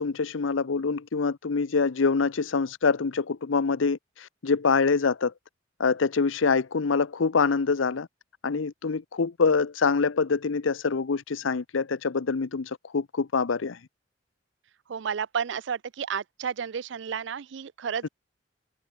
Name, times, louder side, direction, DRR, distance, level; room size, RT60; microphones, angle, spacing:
voice 1, 0.0-5.3 5.8-8.1 8.4-13.8, left 4 dB, 85° left, 0.7 m, -25 dB
voice 2, 14.9-18.1, right 7 dB, 65° right, 0.4 m, -32 dB
head